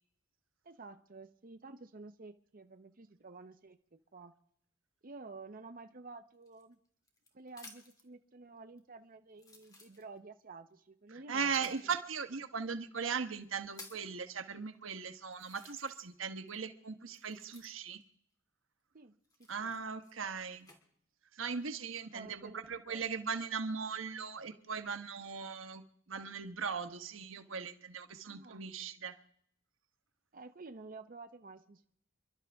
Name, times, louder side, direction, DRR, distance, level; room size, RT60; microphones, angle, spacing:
voice 1, 0.6-4.3 5.0-6.8 7.3-11.9 12.6-12.7 18.9-19.2 19.6-19.7 22.0-23.1 28.2-28.7 30.3-31.9, right 3 dB, 45° right, 8 dB, 0.8 m, -51 dB
sound 1, 6.4-8.1 8.8-8.9 9.3-10.4 11.5-11.8 12.7-12.8 13.3-14.1 14.8-14.9 15.3-16.2 16.5-18.0 19.2-20.8 21.4-21.9, left 3 dB, 20° left, 2.6 m, -56 dB
voice 2, 11.1-18.0 19.5-20.7 21.4-25.8 26.1-29.2, right 5 dB, 80° right, 9 dB, 1.1 m, -39 dB
28.5 x 12.0 x 3.5 m, 0.71 s
head